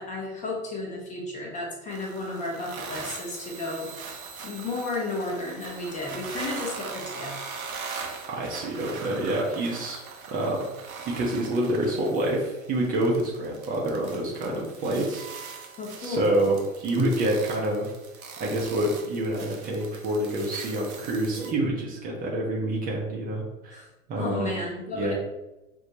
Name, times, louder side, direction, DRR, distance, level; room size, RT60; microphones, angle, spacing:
voice 1, 0.0-3.9 4.4-7.3 15.8-16.4 23.7-23.9 24.1-25.1, left 2 dB, 15° left, -2 dB, 0.7 m, -33 dB
sound 1, 1.9-21.5, right 5 dB, 80° right, 0.8 m, -41 dB
voice 2, 8.4-10.0 10.3-10.6 11.0-15.3 16.0-17.9 18.4-23.8 24.1-24.5 24.9-25.1, right 1 dB, 20° right, -3 dB, 0.6 m, -27 dB
5.3 x 2.1 x 2.7 m, 1.0 s
figure-of-eight pair, 100°, 41 cm